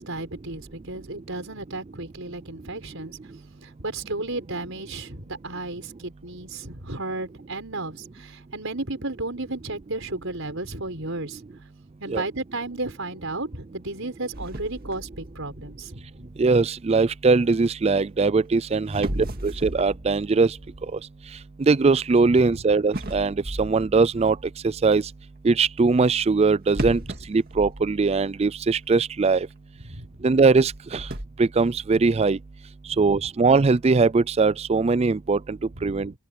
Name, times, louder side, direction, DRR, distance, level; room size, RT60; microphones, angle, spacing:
voice 1, 0.0-3.2 3.6-11.4 12.0-16.1 18.9-19.3 22.4-22.6 26.8-26.9 29.8-30.1 32.9-33.1 35.8-36.1, right 2 dB, 60° right, 5.9 m, -33 dB
sound 1, 14.3-17.5 18.4-18.5 18.9-22.3 22.9-24.8 26.7-28.5 28.8-28.9 29.5-29.6 30.6-31.3, right 1 dB, 45° right, 2.0 m, -36 dB
voice 2, 16.4-20.5 21.6-24.4 24.6-25.0 25.4-27.0 27.3-29.5 30.2-31.0 31.4-32.4 33.0-35.6 35.8-36.1, right 4 dB, 30° right, 0.3 m, -21 dB
open air
head